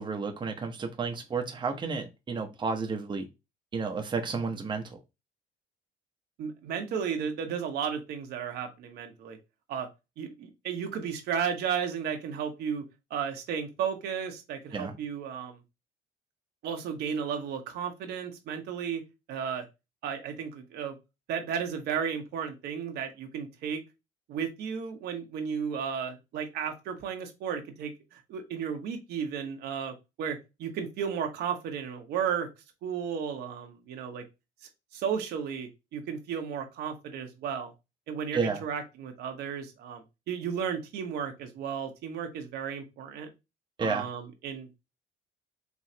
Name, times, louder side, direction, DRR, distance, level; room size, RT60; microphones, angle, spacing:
voice 1, 0.0-3.3 3.7-5.0 14.7-14.9 38.3-38.6 43.8-44.0, right 4 dB, 25° right, 0.8 m, -31 dB
voice 2, 6.4-9.4 9.7-9.9 10.2-12.8 13.1-15.6 16.6-19.0 19.3-19.6 20.0-20.9 21.3-23.8 24.3-32.5 32.8-34.2 34.9-37.7 38.1-43.3 43.8-44.7, right 7 dB, 75° right, 1.1 m, -34 dB
4.7 x 3.1 x 2.8 m
cardioid pair, 110°, 17 cm